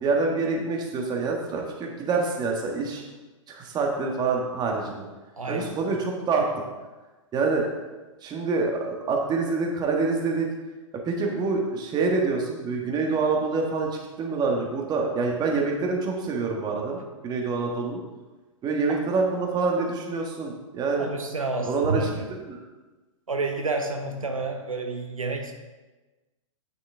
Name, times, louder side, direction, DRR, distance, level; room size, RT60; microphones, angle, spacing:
voice 1, 0.0-3.0 3.5-5.0 5.5-6.5 7.3-7.6 8.2-10.5 11.0-18.0 18.6-21.1 21.6-22.1 22.4-22.6, right 4 dB, 25° right, 0 dB, 1.6 m, -26 dB
voice 2, 5.4-5.8 18.9-19.0 21.0-22.3 23.3-25.5, right 3 dB, 85° right, 4 dB, 0.9 m, -29 dB
9.1 x 6.6 x 3.5 m, 1.2 s
figure-of-eight pair, 110°, 17 cm